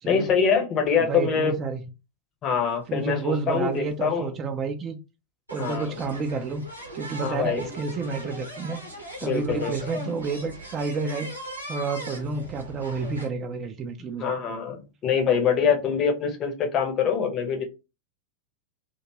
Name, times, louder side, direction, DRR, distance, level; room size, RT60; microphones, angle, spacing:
voice 1, 0.0-1.5 2.4-4.3 5.6-5.9 7.2-7.6 9.2-9.9 14.2-17.6, left 6 dB, 30° left, 0.7 m, -24 dB
voice 2, 1.0-1.8 2.9-5.0 5.5-6.6 6.9-8.8 9.2-11.3 11.7-14.3, right 4 dB, 30° right, 0.4 m, -30 dB
sound 1, 3.0-3.1 3.2-3.5 4.5-4.6 5.5-13.3, right 1 dB, 85° right, 0.7 m, -39 dB
2.5 x 2.2 x 2.9 m
figure-of-eight pair, 90°, 0 cm